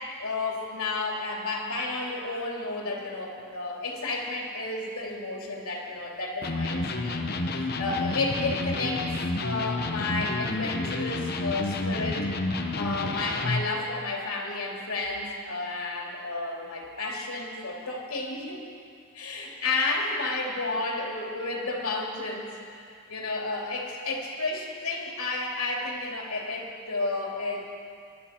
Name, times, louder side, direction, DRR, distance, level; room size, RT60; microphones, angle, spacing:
voice 1, 0.2-7.2 7.5-9.1 9.4-12.2 12.8-18.6 19.1-22.5 22.8-27.7, left 3 dB, 85° left, -1 dB, 2.8 m, -31 dB
Electric guitar, 6.4-13.7, left 2 dB, 45° left, 0.9 m, -30 dB
24.5 x 12.0 x 4.4 m, 2.3 s
head